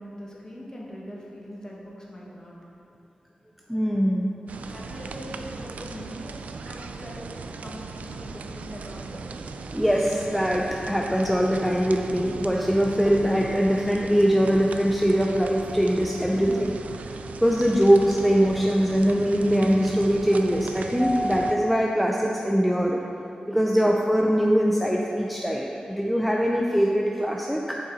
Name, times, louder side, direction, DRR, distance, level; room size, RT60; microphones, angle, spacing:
voice 1, 0.0-2.5 4.6-6.4 6.6-7.3 7.6-9.2 16.2-16.5, equal, 25° left, -4 dB, 1.4 m, -41 dB
voice 2, 3.7-4.3 9.7-16.7 17.1-23.0 23.5-27.8, equal, ahead, -1 dB, 0.4 m, -22 dB
sound 1, 4.5-21.6, right 4 dB, 85° right, 0.3 m, -38 dB
6.8 x 5.5 x 4.0 m, 2.7 s
wide cardioid pair, 80°, 2 cm